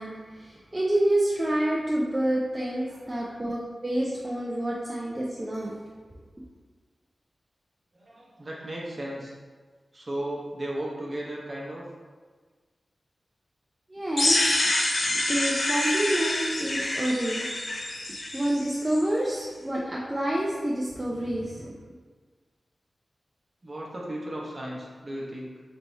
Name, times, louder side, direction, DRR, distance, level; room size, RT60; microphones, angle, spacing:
voice 1, 0.0-5.8 13.9-14.5 15.3-17.5 18.3-21.7, right 1 dB, 20° right, -5 dB, 0.5 m, -28 dB
voice 2, 2.9-3.4 7.9-9.3 9.9-11.9 23.6-25.6, right 1 dB, 35° right, -4 dB, 0.9 m, -36 dB
sound 1, 14.2-19.0, left 1 dB, 55° left, 0.6 m, -27 dB
3.4 x 2.9 x 4.1 m, 1.5 s
wide cardioid pair, 100°, 0 cm